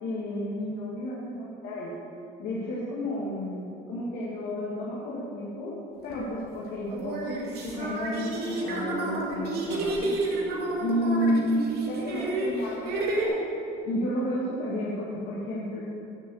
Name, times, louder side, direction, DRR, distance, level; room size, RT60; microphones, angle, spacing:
voice 1, 0.0-1.9 2.4-5.7 6.0-10.1 10.8-13.4 13.8-15.8, equal, 85° left, -7 dB, 2.0 m, -31 dB
sound 1, 6.1-6.2 6.9-13.3, right 2 dB, 70° right, 2.3 m, -30 dB
9.6 x 6.8 x 7.2 m, 2.8 s
cardioid pair, 110°, 17 cm